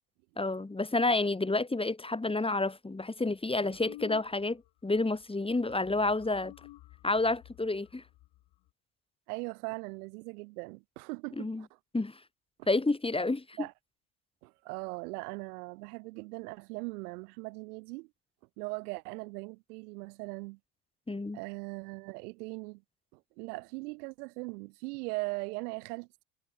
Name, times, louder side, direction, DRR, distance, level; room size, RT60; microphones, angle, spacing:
voice 1, 0.4-6.5 7.0-8.0 11.4-11.6 11.9-12.2 12.7-13.6 21.1-21.4, left 2 dB, 10° left, 2.0 m, -29 dB
sound 1, 3.7-4.7 4.9-5.2 5.5-8.7, left 17 dB, 60° left, 3.3 m, -52 dB
voice 2, 9.3-11.7 13.6-13.7 14.4-18.1 18.6-20.6 21.3-22.8 23.1-26.2, right 27 dB, 75° right, 1.1 m, -40 dB
hypercardioid pair, 65°, 47 cm